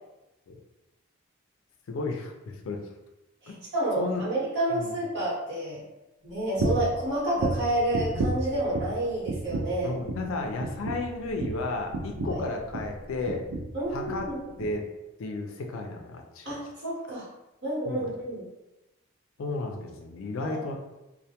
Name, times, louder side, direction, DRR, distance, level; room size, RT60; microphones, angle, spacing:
voice 1, 1.9-2.8 3.5-3.6 4.0-4.2 4.7-4.9 9.8-13.5 13.9-14.3 14.6-14.9 15.2-16.5 17.9-18.1 19.4-20.8, left 3 dB, 70° left, 3 dB, 0.4 m, -33 dB
voice 2, 3.4-5.8 6.2-10.0 12.2-12.4 13.7-14.5 16.4-17.3 17.6-18.5 20.4-20.6, right 1 dB, 50° right, -8 dB, 1.1 m, -29 dB
sound 1, 6.6-7.0 7.4-9.0 9.3-9.8 10.1-10.3 10.6-13.0 13.3-13.7 14.0-14.3 14.6-14.7, right 2 dB, 70° right, 0.4 m, -31 dB
2.1 x 2.1 x 2.8 m, 0.97 s
head